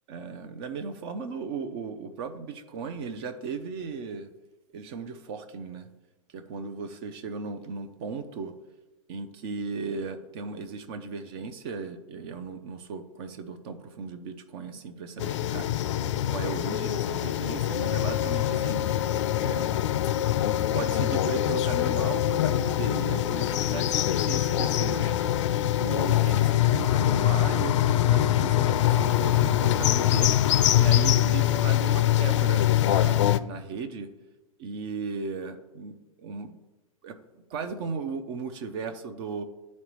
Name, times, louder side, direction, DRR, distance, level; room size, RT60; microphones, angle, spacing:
voice 1, 0.1-4.3 4.7-5.9 6.3-8.5 9.1-15.7 16.3-19.1 19.4-19.8 20.2-20.3 20.7-25.2 25.7-30.3 30.7-34.1 34.6-36.6 37.0-37.2 37.5-39.4, right 5 dB, 45° right, 8 dB, 0.6 m, -36 dB
sound 1, 15.2-33.4, left 12 dB, 55° left, 0.4 m, -24 dB
10.5 x 4.1 x 3.0 m, 1.1 s
hypercardioid pair, 115°, 18 cm